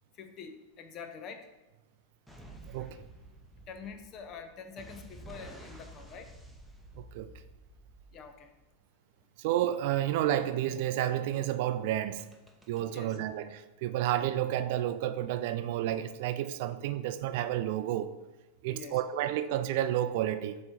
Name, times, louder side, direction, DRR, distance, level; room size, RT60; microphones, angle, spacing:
voice 1, 0.1-1.5 3.7-6.3 8.1-8.5 12.9-13.2 18.7-19.0, left 5 dB, 40° left, 0.7 m, -46 dB
sound 1, 2.3-8.6 12.2-12.8, right 1 dB, ahead, 0.9 m, -51 dB
voice 2, 9.4-12.2 12.7-18.1 18.6-20.6, right 12 dB, 60° right, 0.4 m, -30 dB
7.6 x 3.1 x 4.3 m
hypercardioid pair, 95°, 0 cm